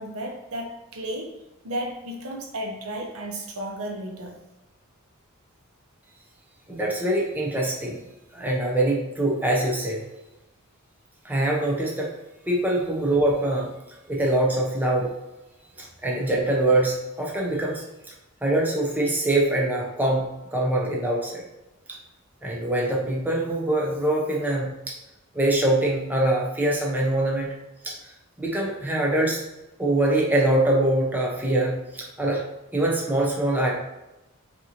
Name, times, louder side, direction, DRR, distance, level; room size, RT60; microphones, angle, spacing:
voice 1, 0.0-1.3 1.6-4.4 15.7-15.8, right 1 dB, 70° right, 0 dB, 0.8 m, -33 dB
voice 2, 6.7-8.0 8.3-10.0 11.2-12.1 12.5-13.7 14.1-15.1 15.8-17.8 18.4-21.4 22.4-25.0 25.3-27.5 27.8-27.9 28.4-29.4 29.8-32.4 32.7-33.7, right 1 dB, 10° right, -3 dB, 0.6 m, -23 dB
5.3 x 2.7 x 2.8 m, 0.96 s
head